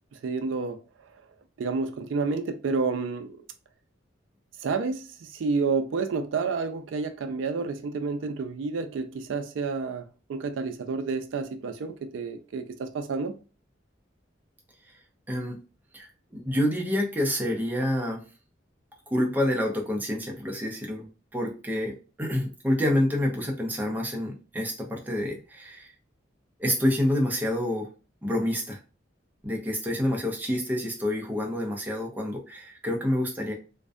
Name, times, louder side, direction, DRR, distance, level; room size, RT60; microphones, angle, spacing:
voice 1, 0.2-0.8 1.6-3.4 4.6-10.0 10.3-13.3, right 4 dB, 85° right, 0.4 m, -29 dB
voice 2, 15.3-15.6 15.9-18.3 19.1-21.1 21.3-25.9 26.6-27.9 28.2-28.8 29.4-33.5, left 1 dB, 10° right, 0.5 m, -28 dB
2.5 x 2.1 x 2.3 m
head